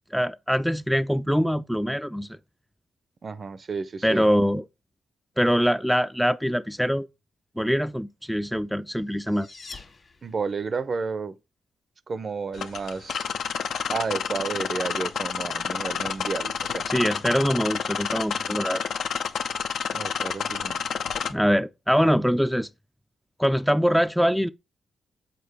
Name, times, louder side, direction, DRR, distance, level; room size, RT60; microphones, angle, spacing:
voice 1, 0.1-2.4 4.0-4.7 5.4-7.1 7.6-9.5 16.9-18.8 21.3-22.7 23.4-24.5, equal, ahead, 0.3 m, -23 dB
voice 2, 3.2-4.3 10.2-11.3 12.1-13.3 13.9-16.9 19.9-20.8, right 4 dB, 50° right, 0.5 m, -31 dB
sound 1, 8.6-10.7, left 3 dB, 50° left, 1.5 m, -46 dB
sound 2, 12.5-21.3, left 7 dB, 75° left, 0.5 m, -29 dB
6.8 x 4.3 x 3.4 m
supercardioid pair, 50°, 0 cm